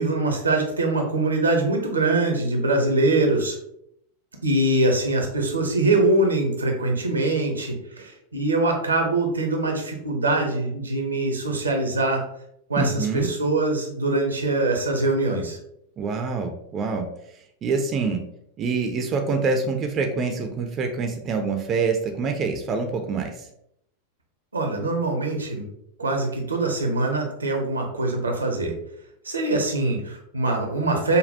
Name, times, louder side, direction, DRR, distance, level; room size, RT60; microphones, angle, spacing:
voice 1, 0.0-3.6 4.4-12.2 12.7-15.6 24.5-25.7 26.0-28.7 29.2-31.2, right 2 dB, 80° right, 2 dB, 0.7 m, -23 dB
voice 2, 12.8-13.3 16.0-17.1 17.6-18.2 18.6-23.3, right 4 dB, 30° right, 4 dB, 0.5 m, -25 dB
5.3 x 2.2 x 2.7 m, 0.75 s
figure-of-eight pair, 90°, 0 cm